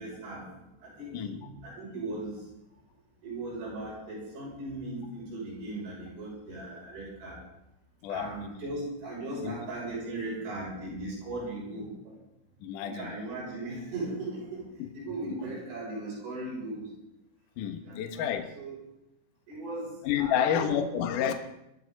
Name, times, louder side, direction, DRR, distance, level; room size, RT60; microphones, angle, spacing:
voice 1, 0.0-2.4 3.2-7.4 8.1-12.1 12.8-14.7 14.9-16.9 17.9-18.3 18.5-18.8 19.5-20.7, right 2 dB, 65° right, -5 dB, 9.1 m, -38 dB
voice 2, 12.6-13.1 14.8-14.9 17.6-18.5 20.0-21.3, left 9 dB, 90° left, 6 dB, 1.8 m, -29 dB
21.0 x 13.5 x 4.1 m, 0.86 s
omnidirectional pair, 5.8 m